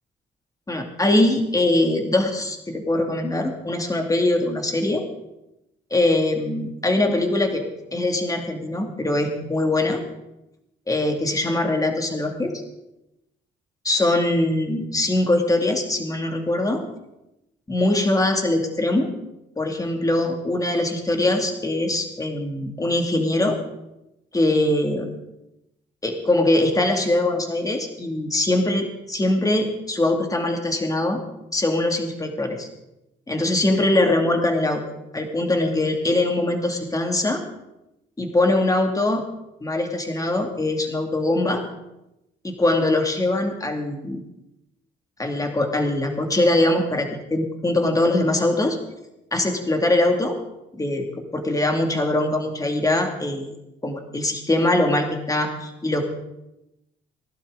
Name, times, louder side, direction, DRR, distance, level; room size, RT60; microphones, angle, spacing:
voice 1, 0.7-5.1 5.9-10.0 10.9-12.5 13.8-16.8 17.7-19.1 19.6-23.6 24.3-25.1 26.0-31.2 31.5-32.7 33.3-34.8 35.1-37.4 38.2-39.2 39.6-41.6 42.4-44.2 45.2-48.8 49.3-50.4 50.8-53.5 53.8-56.1, left 2 dB, 15° left, 3 dB, 2.5 m, -22 dB
19.5 x 11.5 x 4.0 m, 0.90 s
cardioid pair, 90°, 20 cm